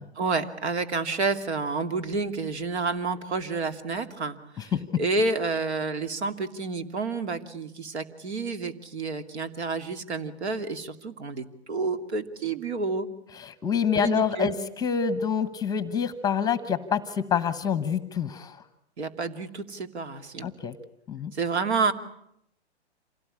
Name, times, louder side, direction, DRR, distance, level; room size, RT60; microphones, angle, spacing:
voice 1, 0.2-13.1 13.9-14.6 19.0-20.5 21.3-21.9, right 4 dB, 75° right, 9 dB, 2.8 m, -29 dB
voice 2, 13.4-18.6 20.4-20.7 21.1-21.3, left 7 dB, 10° left, 14 dB, 1.0 m, -27 dB
27.0 x 18.0 x 10.0 m, 0.76 s
hypercardioid pair, 140°, 34 cm